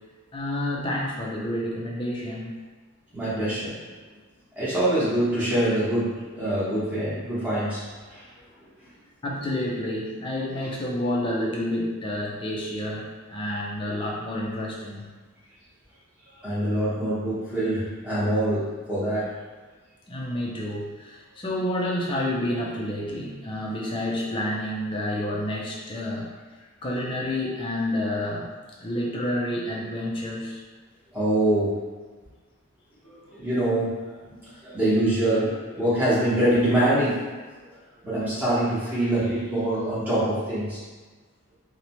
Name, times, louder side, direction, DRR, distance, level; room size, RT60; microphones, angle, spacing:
voice 1, 0.3-2.6 9.2-15.1 20.1-26.3 26.8-28.5 28.8-30.6, left 1 dB, 20° left, -3 dB, 0.3 m, -29 dB
voice 2, 3.1-3.8 4.6-7.8 8.1-8.2 16.4-19.3 31.1-31.7 33.0-33.9 34.6-37.3 38.0-40.8, right 1 dB, 10° right, -12 dB, 0.8 m, -24 dB
2.7 x 2.0 x 2.9 m, 1.4 s
head